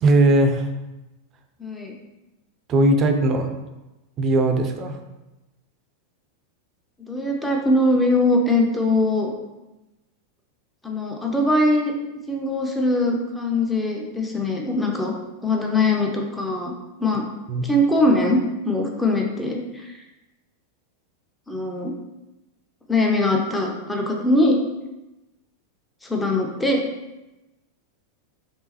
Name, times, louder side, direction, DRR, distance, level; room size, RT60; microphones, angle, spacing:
voice 1, 0.0-0.7 2.7-3.5 4.2-5.0 17.5-17.7, right 2 dB, 35° right, 5 dB, 0.5 m, -18 dB
voice 2, 1.6-1.9 7.1-9.3 10.8-11.9 12.3-15.1 15.4-16.7 17.0-17.2 17.6-19.9 21.5-21.9 22.9-24.6 26.0-26.8, left 1 dB, 10° left, 0 dB, 0.7 m, -21 dB
3.6 x 3.3 x 2.9 m, 1.0 s
figure-of-eight pair, 90°, 0 cm